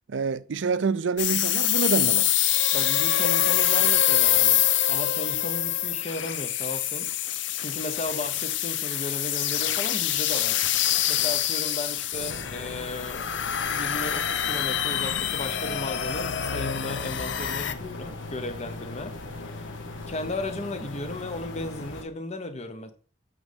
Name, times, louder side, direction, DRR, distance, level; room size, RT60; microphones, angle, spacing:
voice 1, 0.1-2.3, right 5 dB, 75° right, 0.5 m, -27 dB
sound 1, 1.2-17.7, left 12 dB, 70° left, 0.6 m, -25 dB
voice 2, 2.7-7.1 7.6-10.6 11.1-13.3 13.7-19.2 19.4-19.5 20.1-22.9, left 2 dB, 35° left, 1.1 m, -35 dB
sound 2, 12.1-22.0, left 2 dB, 85° left, 1.4 m, -39 dB
8.8 x 6.4 x 3.5 m
head